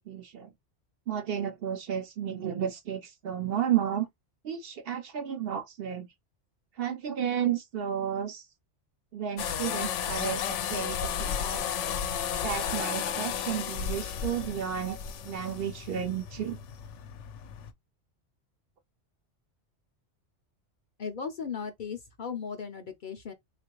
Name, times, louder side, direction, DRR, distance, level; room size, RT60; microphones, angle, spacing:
voice 1, 0.1-0.5 1.1-4.1 4.4-6.1 6.8-8.5 9.1-11.7 12.4-15.0 15.2-16.6, right 9 dB, 60° right, 0.7 m, -32 dB
sound 1, 9.4-17.7, left 8 dB, 85° left, 0.9 m, -33 dB
voice 2, 21.0-23.3, left 6 dB, 55° left, 0.6 m, -37 dB
3.6 x 2.4 x 2.8 m
omnidirectional pair, 1.2 m